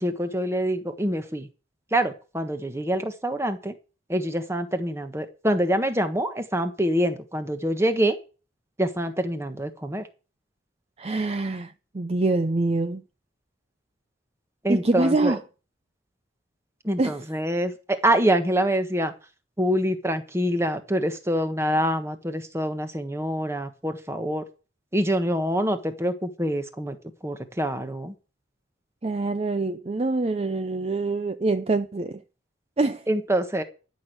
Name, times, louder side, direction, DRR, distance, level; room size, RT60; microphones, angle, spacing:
voice 1, 0.0-1.5 1.9-3.7 4.1-8.2 8.8-10.1 14.6-15.3 16.8-19.1 19.6-24.4 24.9-27.0 27.2-28.1 33.1-33.6, right 1 dB, 15° right, 1.3 m, -25 dB
voice 2, 11.0-13.0 14.7-15.4 17.0-17.2 29.0-32.2 32.8-33.1, right 2 dB, 30° right, 0.5 m, -25 dB
12.5 x 6.3 x 8.0 m
head